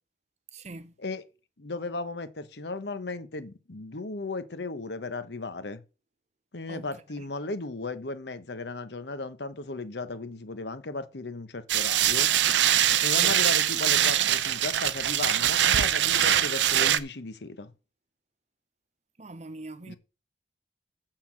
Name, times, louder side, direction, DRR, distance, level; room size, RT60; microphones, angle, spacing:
voice 1, 0.5-0.9 6.7-6.9 7.2-7.3 13.2-13.4 19.2-19.9, right 2 dB, 40° right, 0.8 m, -42 dB
voice 2, 1.6-5.8 6.5-12.3 13.0-17.7 19.9-20.0, left 3 dB, 70° left, 1.0 m, -36 dB
sound 1, 11.7-17.0, right 11 dB, 90° right, 0.6 m, -23 dB
6.7 x 5.9 x 7.5 m
head